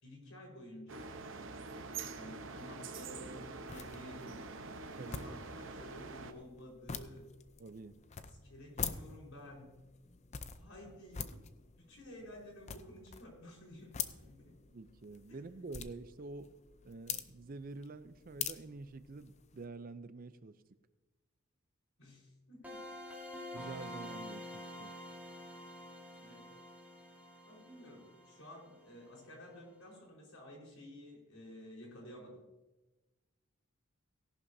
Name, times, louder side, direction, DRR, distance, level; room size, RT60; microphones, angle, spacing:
voice 1, 0.0-1.1 2.0-4.4 5.0-7.3 8.3-9.8 10.5-11.5 11.8-14.5 15.3-15.4 22.0-22.9 26.2-26.5 27.5-32.4, left 1 dB, 80° left, -2 dB, 4.5 m, -52 dB
sound 1, 0.9-6.3, right 4 dB, 60° right, 0.8 m, -45 dB
sound 2, 3.1-19.7, left 7 dB, 30° left, 0.5 m, -46 dB
voice 2, 5.0-5.4 7.6-8.0 14.7-16.5 16.8-20.6 23.5-24.9, right 3 dB, 40° right, 13 dB, 0.5 m, -47 dB
sound 3, 22.6-29.3, left 1 dB, 10° right, 2.8 m, -48 dB
17.5 x 11.0 x 2.7 m, 1.1 s
head